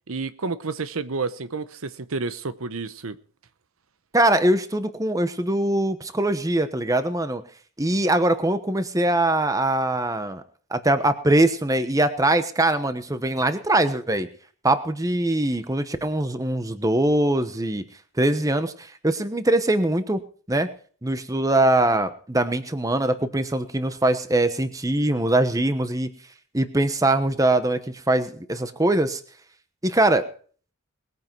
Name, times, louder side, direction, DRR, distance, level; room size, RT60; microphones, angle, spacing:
voice 1, 0.1-3.2, right 4 dB, 75° right, 0.9 m, -30 dB
voice 2, 4.1-7.4 7.8-10.4 10.7-14.3 14.6-17.8 18.2-20.2 20.5-20.7 21.0-26.1 26.5-29.2 29.8-30.2, right 1 dB, 15° right, 1.1 m, -22 dB
20.5 x 9.5 x 4.7 m
head